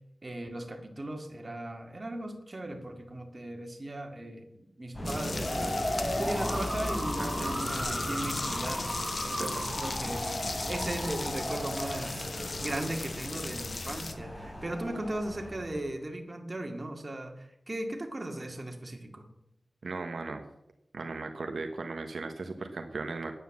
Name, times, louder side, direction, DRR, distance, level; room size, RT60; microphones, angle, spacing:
voice 1, 0.2-5.9 6.2-8.9 9.2-19.3, right 1 dB, 35° right, 3 dB, 2.2 m, -37 dB
sound 1, 4.9-15.8, equal, 30° left, 4.6 m, -35 dB
sound 2, 5.0-14.1, left 3 dB, 60° left, 1.1 m, -38 dB
voice 2, 7.2-7.6 9.4-9.5 19.8-20.4 20.9-23.3, right 3 dB, 85° right, 5 dB, 1.0 m, -37 dB
9.8 x 9.3 x 7.2 m, 0.84 s
wide cardioid pair, 75°, 0 cm